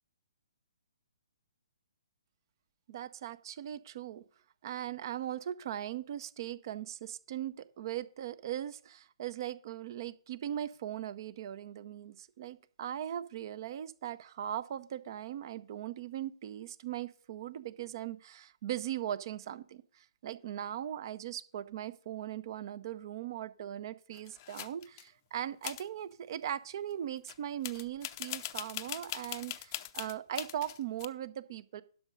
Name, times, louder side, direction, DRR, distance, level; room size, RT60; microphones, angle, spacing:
voice 1, 2.9-4.2 4.6-31.8, right 11 dB, 45° right, 17 dB, 0.7 m, -39 dB
sound 1, 24.1-25.1 25.6-25.9 27.3-27.4 27.6-31.1, left 15 dB, 30° left, 0.6 m, -41 dB
11.5 x 6.3 x 5.3 m, 0.43 s
figure-of-eight pair, 135°, 3 cm